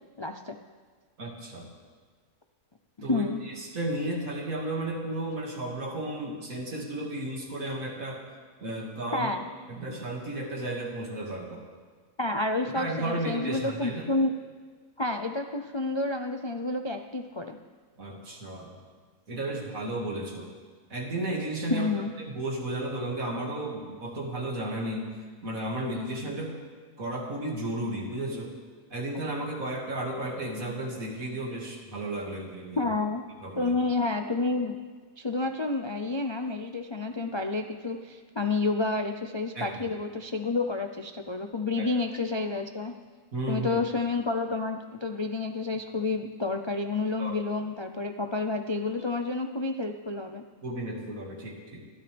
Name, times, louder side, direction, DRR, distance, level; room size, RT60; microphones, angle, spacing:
voice 1, 0.2-0.6 3.0-3.4 9.1-9.4 12.2-14.3 15.0-17.6 21.7-22.1 23.4-23.5 32.8-33.2 33.6-34.7 35.2-42.9 43.5-50.4, left 3 dB, 35° left, 5 dB, 0.4 m, -29 dB
voice 2, 1.2-1.7 3.0-8.2 8.6-9.3 9.7-11.7 12.7-14.1 18.0-18.8 19.3-20.5 20.9-21.9 22.2-25.1 25.4-26.6 27.0-28.5 28.9-32.9 33.4-33.7 39.5-39.8 41.8-41.9 43.3-43.8 47.2-47.4 50.6-51.8, right 1 dB, 70° right, -1 dB, 2.7 m, -33 dB
28.0 x 12.5 x 3.5 m, 1.5 s
omnidirectional pair, 1.5 m